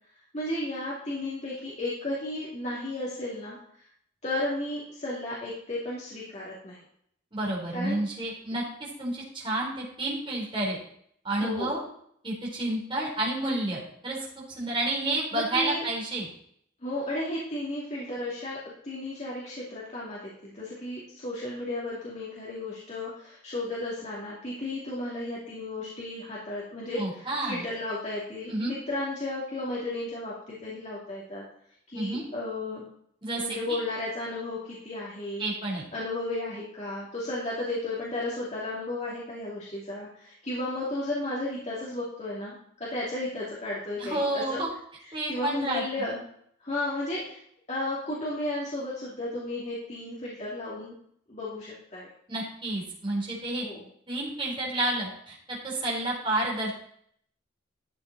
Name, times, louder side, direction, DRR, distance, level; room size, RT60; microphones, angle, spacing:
voice 1, 0.3-3.8 4.2-6.8 7.7-8.0 11.4-11.7 15.3-15.9 16.8-31.4 31.9-32.8 33.4-35.5 35.9-42.5 42.8-44.6 45.3-46.2 46.6-47.4 47.7-50.9 51.3-52.1 53.6-53.8, left 1 dB, 35° left, -6 dB, 2.6 m, -34 dB
voice 2, 7.3-10.8 11.2-11.8 12.2-14.2 14.6-16.3 27.0-27.6 28.5-28.7 31.9-32.2 33.2-33.8 35.4-35.8 44.0-44.7 45.1-45.8 52.3-53.6 54.1-56.7, right 2 dB, 25° right, -4 dB, 3.8 m, -30 dB
12.5 x 7.9 x 4.1 m, 0.66 s
head